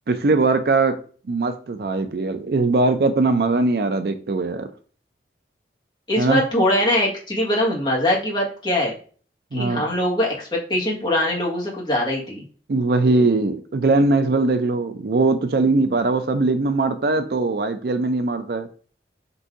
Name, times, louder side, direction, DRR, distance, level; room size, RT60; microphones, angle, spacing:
voice 1, 0.1-1.0 1.3-4.7 6.2-6.4 9.5-9.8 12.7-18.7, right 3 dB, 60° right, 9 dB, 0.4 m, -20 dB
voice 2, 6.1-9.0 9.5-12.4, left 1 dB, 25° left, -3 dB, 1.3 m, -22 dB
4.0 x 2.6 x 4.6 m, 0.42 s
head